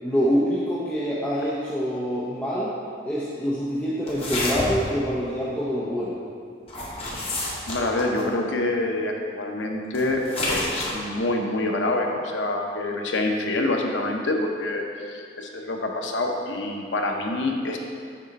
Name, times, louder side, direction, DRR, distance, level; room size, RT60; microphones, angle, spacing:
voice 1, 0.0-2.7 3.1-6.2, equal, 10° left, -8 dB, 0.6 m, -25 dB
sound 1, 4.1-4.9 6.7-8.3 9.9-10.9, left 1 dB, 30° left, 1.2 m, -29 dB
voice 2, 7.7-10.2 10.5-17.8, left 2 dB, 85° left, 2 dB, 0.7 m, -26 dB
6.4 x 4.1 x 5.2 m, 2.3 s
head